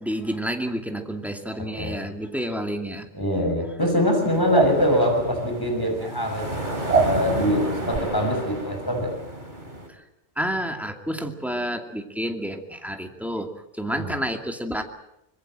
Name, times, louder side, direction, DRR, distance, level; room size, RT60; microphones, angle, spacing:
voice 1, 0.0-3.1 9.9-10.0 10.4-14.8, equal, ahead, 5 dB, 2.4 m, -30 dB
voice 2, 1.6-2.0 3.1-9.1 14.0-14.1, left 1 dB, 20° left, 2 dB, 6.6 m, -24 dB
sound 1, 4.2-9.9, right 1 dB, 40° right, 3.6 m, -32 dB
sound 2, 4.5-4.7 6.9-7.1 7.9-8.0, right 4 dB, 70° right, 1.7 m, -20 dB
25.0 x 21.5 x 7.8 m, 0.81 s
omnidirectional pair, 1.2 m